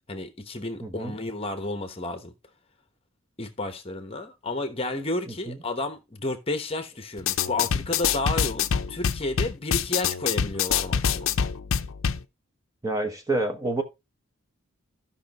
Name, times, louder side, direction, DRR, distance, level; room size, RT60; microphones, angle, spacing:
voice 1, 0.1-2.3 3.4-11.3, left 2 dB, 25° left, 1.0 m, -31 dB
voice 2, 0.8-1.2 5.3-5.6 12.8-13.8, right 2 dB, 15° right, 1.1 m, -28 dB
sound 1, 7.2-12.2, left 7 dB, 75° left, 0.6 m, -26 dB
14.5 x 5.6 x 3.0 m
head